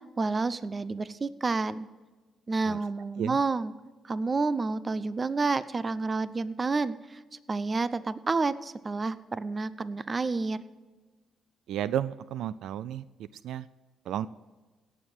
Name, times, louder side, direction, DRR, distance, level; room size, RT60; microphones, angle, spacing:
voice 1, 0.2-1.9 2.5-3.7 4.0-7.2 7.5-10.6, right 3 dB, 30° right, 15 dB, 0.6 m, -29 dB
voice 2, 11.7-13.0 13.4-13.7 14.1-14.3, right 11 dB, 80° right, 16 dB, 0.3 m, -32 dB
17.0 x 7.3 x 6.3 m, 1.3 s
cardioid pair, 90°, 0 cm